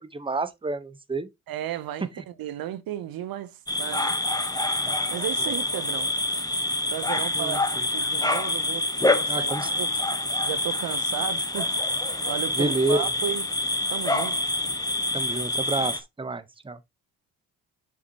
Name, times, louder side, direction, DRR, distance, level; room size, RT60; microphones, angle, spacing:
voice 1, 0.0-1.3 7.3-7.9 9.3-9.8 12.5-13.1 15.1-16.8, right 2 dB, 15° right, 0.9 m, -29 dB
voice 2, 1.5-4.2 5.1-6.1 6.9-9.9 10.4-11.7 12.2-13.5 13.9-14.4, right 11 dB, 65° right, 0.7 m, -34 dB
sound 1, 3.7-16.0, left 2 dB, 10° left, 1.0 m, -26 dB
6.9 x 4.9 x 2.8 m
supercardioid pair, 55°, 38 cm